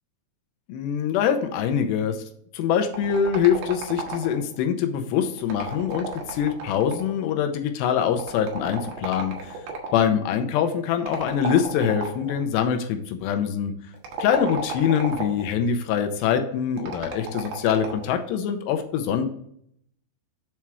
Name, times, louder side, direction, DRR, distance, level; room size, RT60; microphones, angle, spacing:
voice 1, 0.7-2.2 2.5-9.6 9.9-13.7 14.2-19.2, left 8 dB, 80° left, 6 dB, 2.7 m, -24 dB
sound 1, 2.9-4.6 5.4-7.2 8.2-10.0 11.1-12.4 13.9-15.5 16.8-18.1, right 3 dB, 70° right, 2.9 m, -34 dB
7.3 x 4.4 x 4.7 m, 0.68 s
omnidirectional pair, 5.2 m